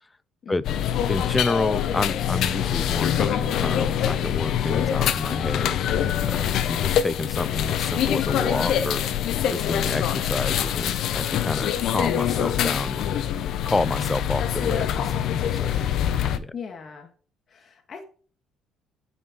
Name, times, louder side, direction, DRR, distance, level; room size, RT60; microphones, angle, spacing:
voice 1, 0.4-1.0 6.4-7.0 16.5-17.1 17.5-18.0, left 6 dB, 40° left, 1.3 m, -39 dB
sound 1, 0.6-16.4, left 10 dB, 65° left, 0.7 m, -24 dB
voice 2, 1.1-5.8 6.2-13.1 13.7-15.8 16.3-16.5, left 2 dB, 15° left, 0.4 m, -29 dB
9.0 x 4.3 x 5.1 m
cardioid pair, 120°, 0 cm